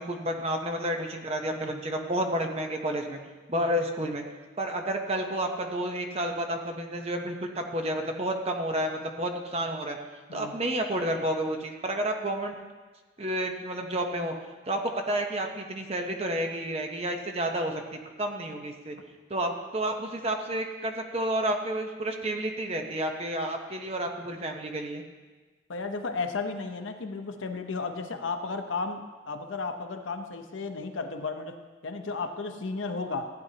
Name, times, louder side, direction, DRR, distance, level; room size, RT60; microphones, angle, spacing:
voice 1, 0.0-3.2 3.5-4.2 4.6-10.0 10.3-12.6 13.2-14.3 14.7-19.0 19.3-25.0, right 1 dB, 30° right, 3 dB, 0.9 m, -30 dB
voice 2, 25.7-31.5 31.8-33.3, left 4 dB, 80° left, 6 dB, 0.8 m, -34 dB
15.0 x 9.6 x 2.9 m, 1.3 s
head